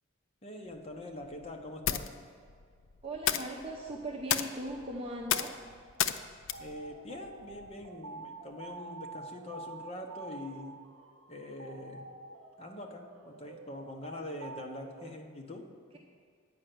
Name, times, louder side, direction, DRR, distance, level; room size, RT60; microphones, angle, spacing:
voice 1, 0.4-2.2 6.6-10.8 11.3-12.0 12.6-15.7, left 1 dB, 30° left, 2 dB, 1.0 m, -44 dB
sound 1, 0.7-7.9, left 9 dB, 85° left, 0.5 m, -36 dB
voice 2, 3.0-5.6, right 1 dB, 30° right, -2 dB, 0.8 m, -39 dB
sound 2, 6.5-15.1, right 3 dB, 85° right, 0.7 m, -48 dB
9.5 x 5.6 x 7.8 m, 2.1 s
head